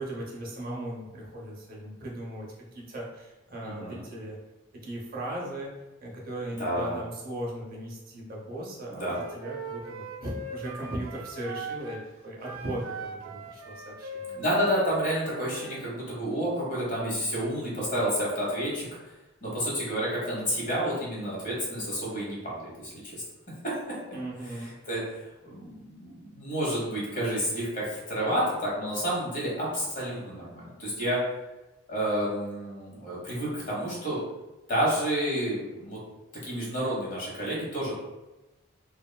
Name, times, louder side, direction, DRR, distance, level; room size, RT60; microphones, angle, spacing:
voice 1, 0.0-4.4 4.8-5.7 6.0-14.4 24.1-24.7, right 1 dB, 45° right, -3 dB, 0.7 m, -37 dB
voice 2, 3.6-4.1 6.6-7.0 8.9-9.2 14.4-18.9 19.4-23.2 23.6-23.7 24.6-31.2 31.9-34.2 34.7-36.0 36.4-37.9, equal, 40° left, -5 dB, 1.0 m, -30 dB
Wind instrument woodwind instrument, 9.0-12.0 12.4-15.8, right 4 dB, 75° right, 0.3 m, -40 dB
3.2 x 2.2 x 2.2 m, 1.1 s
head